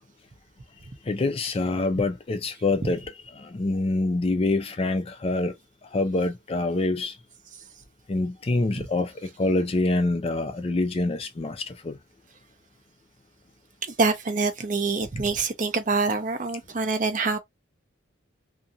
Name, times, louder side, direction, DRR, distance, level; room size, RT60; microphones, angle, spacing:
voice 1, 1.1-3.0 3.4-5.5 5.9-7.2 8.1-12.0, left 2 dB, 30° left, 0.4 m, -26 dB
voice 2, 13.8-17.4, right 3 dB, 40° right, 0.6 m, -25 dB
2.6 x 2.6 x 2.6 m
head